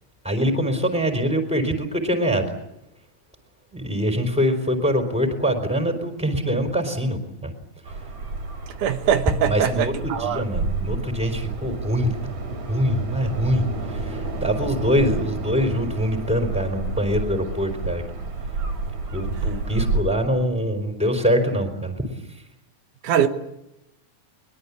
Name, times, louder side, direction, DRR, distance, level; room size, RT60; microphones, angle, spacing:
voice 1, 0.2-2.5 3.7-7.5 9.4-9.9 10.2-12.3 12.7-18.0 19.1-22.1, equal, ahead, 3.9 m, -24 dB
sound 1, 7.9-20.0, right 3 dB, 70° right, 5.1 m, -30 dB
voice 2, 8.8-10.4 23.0-23.3, right 9 dB, 90° right, 2.9 m, -22 dB
22.5 x 22.5 x 8.5 m
omnidirectional pair, 3.5 m